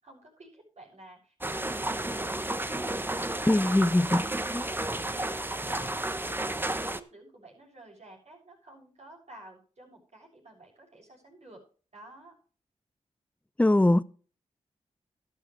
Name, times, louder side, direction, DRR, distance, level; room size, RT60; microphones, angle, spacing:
voice 1, 0.0-4.4 4.7-11.6 11.9-12.3, right 2 dB, 60° right, 6.8 m, -51 dB
sound 1, 1.4-7.0, right 1 dB, 15° right, 0.9 m, -32 dB
voice 2, 3.5-4.2 4.5-4.7 13.6-14.0, left 1 dB, 10° left, 0.6 m, -22 dB
12.5 x 12.0 x 3.3 m
cardioid pair, 60°, 13 cm